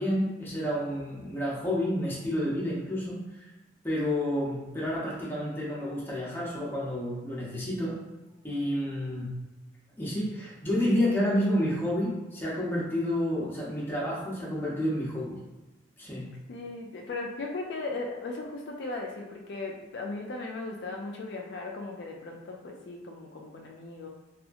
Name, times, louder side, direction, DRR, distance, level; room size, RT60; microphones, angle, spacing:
voice 1, 0.0-3.2 3.8-8.0 8.4-9.4 10.0-15.4 16.0-16.3, equal, 10° left, -6 dB, 0.7 m, -29 dB
voice 2, 16.5-24.1, left 3 dB, 65° left, 1 dB, 0.3 m, -37 dB
2.8 x 2.4 x 2.5 m, 1.2 s
head